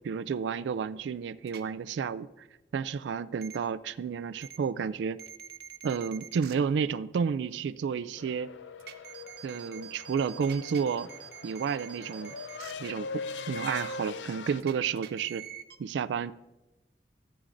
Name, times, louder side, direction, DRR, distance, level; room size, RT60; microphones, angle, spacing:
voice 1, 0.0-2.5 2.7-5.2 5.8-8.5 9.4-11.1 11.4-12.4 12.8-15.4 15.8-16.3, right 6 dB, 85° right, 15 dB, 0.3 m, -31 dB
sound 1, 1.5-1.6 3.4-3.6 4.4-4.6 5.2-6.5 8.8-12.7 14.6-15.8, right 10 dB, 65° right, 0.7 m, -45 dB
sound 2, 8.2-14.6, left 4 dB, 90° left, 0.4 m, -41 dB
14.0 x 9.6 x 2.6 m, 1.0 s
head